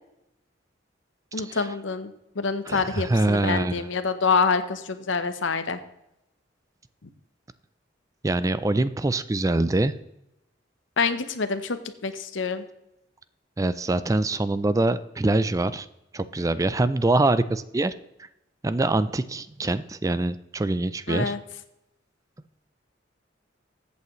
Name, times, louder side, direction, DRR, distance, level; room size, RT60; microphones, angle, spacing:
voice 1, 1.3-5.8 11.0-12.6 21.1-21.4, left 5 dB, 85° left, 10 dB, 0.9 m, -26 dB
voice 2, 2.7-3.9 8.2-9.9 13.6-15.9 16.1-17.9 18.6-21.4, right 2 dB, 15° right, 15 dB, 0.4 m, -24 dB
14.5 x 8.3 x 3.1 m, 0.86 s
head